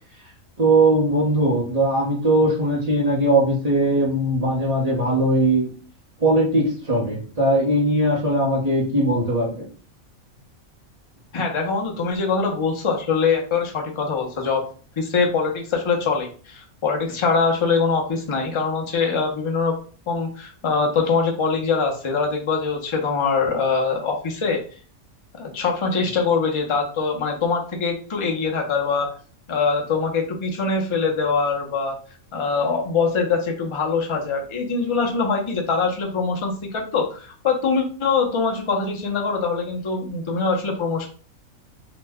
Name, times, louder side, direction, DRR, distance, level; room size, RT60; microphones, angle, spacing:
voice 1, 0.6-5.7 6.2-9.7, right 1 dB, 35° right, -4 dB, 0.8 m, -20 dB
voice 2, 11.3-14.6 15.0-19.8 20.1-24.6 25.3-29.1 29.5-32.0 32.3-41.1, left 4 dB, 45° left, 1 dB, 0.4 m, -23 dB
2.9 x 2.1 x 3.4 m, 0.40 s
omnidirectional pair, 1.5 m